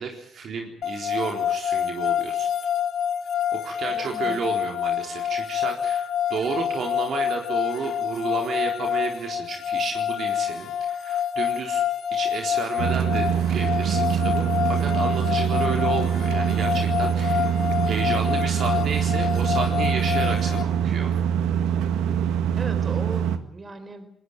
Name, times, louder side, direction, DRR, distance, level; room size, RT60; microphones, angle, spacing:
voice 1, 0.0-2.5 3.6-6.0 6.3-11.8 12.1-17.5 17.8-21.1, right 5 dB, 55° right, 3 dB, 4.0 m, -32 dB
sound 1, 0.8-20.6, left 9 dB, 60° left, 2.4 m, -27 dB
voice 2, 3.9-4.4 22.5-24.1, right 3 dB, 30° right, 10 dB, 4.8 m, -37 dB
sound 2, 12.8-23.4, right 9 dB, 70° right, 1.7 m, -24 dB
21.0 x 19.0 x 9.0 m, 0.68 s
hypercardioid pair, 50°, 0 cm